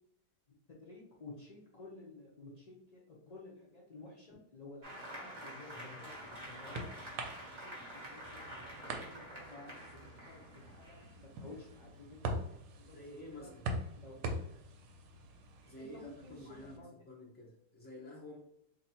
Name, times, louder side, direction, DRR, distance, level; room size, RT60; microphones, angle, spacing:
voice 1, 0.7-6.8 7.4-12.4 12.7-13.5 14.0-14.2 15.8-16.9, left 3 dB, 80° left, -4 dB, 0.3 m, -53 dB
Applause, 4.8-12.0, equal, 30° right, 1.0 m, -48 dB
sound 1, 5.9-16.8, right 1 dB, 80° right, 1.2 m, -44 dB
voice 2, 12.9-13.7 15.6-18.4, left 1 dB, 10° left, -3 dB, 0.5 m, -50 dB
2.9 x 2.7 x 4.2 m, 0.75 s
omnidirectional pair, 1.8 m